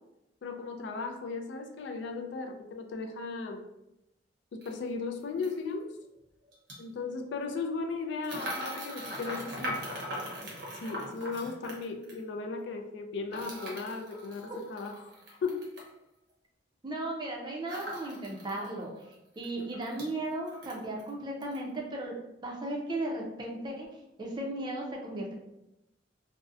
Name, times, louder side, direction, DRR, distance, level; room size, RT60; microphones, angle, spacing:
voice 1, 0.4-3.6 4.5-5.9 6.8-9.8 10.8-15.1 15.4-15.7, left 4 dB, 70° left, 4 dB, 0.3 m, -36 dB
sound 1, 4.6-4.7 5.4-5.6 6.5-6.8 8.2-12.2 13.3-15.9 17.7-18.7 19.0-19.1 19.4-20.1 20.5-21.1 21.4-21.6, equal, 65° right, 0.7 m, -40 dB
voice 2, 16.8-19.1 19.4-22.2 22.4-23.9 24.2-25.3, right 1 dB, 25° right, -1 dB, 0.4 m, -36 dB
2.6 x 2.0 x 2.4 m, 0.88 s
head